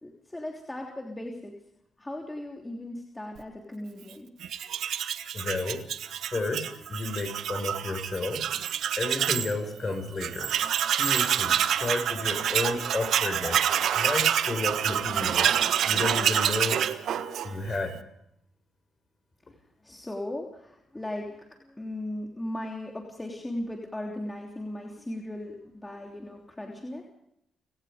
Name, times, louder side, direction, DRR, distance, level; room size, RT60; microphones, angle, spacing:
voice 1, 0.0-1.6 2.0-4.3 19.5-27.0, left 1 dB, 15° left, 0 dB, 3.2 m, -37 dB
Tools, 4.4-9.5 9.9-10.0 10.2-17.8, right 9 dB, 70° right, 1.4 m, -27 dB
voice 2, 5.3-5.8 6.3-8.5 9.0-10.5 10.9-13.7 13.9-15.6 15.8-16.8 17.4-18.0, left 3 dB, 35° left, 7 dB, 5.9 m, -32 dB
30.0 x 17.5 x 5.2 m, 0.77 s
cardioid pair, 90°, 0 cm